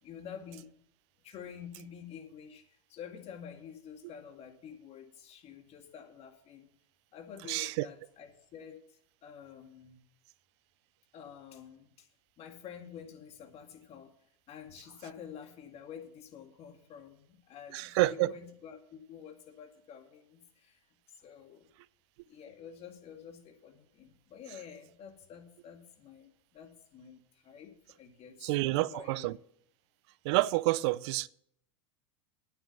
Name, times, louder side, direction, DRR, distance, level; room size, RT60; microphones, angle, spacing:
voice 1, 0.0-0.7 1.2-6.7 7.1-10.0 11.1-12.1 12.4-14.1 14.5-20.8 21.2-21.7 22.2-29.3, left 8 dB, 40° left, 2.0 m, -49 dB
voice 2, 7.5-7.9 17.7-18.3 28.4-29.4 30.2-31.3, right 19 dB, 60° right, 0.5 m, -28 dB
9.1 x 7.0 x 8.3 m
hypercardioid pair, 105°, 16 cm